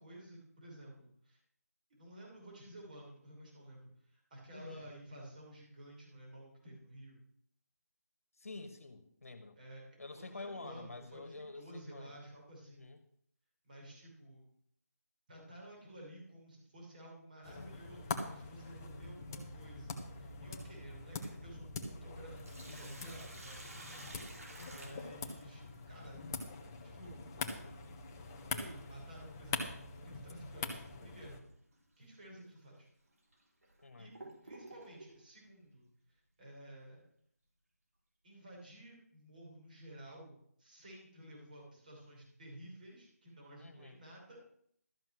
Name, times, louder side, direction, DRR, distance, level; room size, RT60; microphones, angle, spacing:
voice 1, 0.0-1.4 1.9-7.2 9.6-9.8 10.1-12.9 13.6-14.5 15.3-24.0 24.7-26.2 26.8-27.2 28.4-31.4 32.0-32.9 34.0-34.1 34.4-37.0 38.2-44.4, right 1 dB, 30° right, -2 dB, 5.7 m, -53 dB
voice 2, 4.5-4.9 8.4-9.6 10.0-12.2 12.6-13.0 24.6-25.0 33.8-34.1 43.6-44.0, left 3 dB, 55° left, 9 dB, 1.6 m, -49 dB
sound 1, 17.4-31.4, left 4 dB, 15° left, 0.9 m, -44 dB
Sink (filling or washing), 22.4-25.8 28.2-28.3 30.1-30.3 30.8-30.9 31.7-31.9 32.6-32.7 33.3-35.2, right 2 dB, 60° right, 4.0 m, -52 dB
13.0 x 7.8 x 6.3 m, 0.66 s
figure-of-eight pair, 170°, 9 cm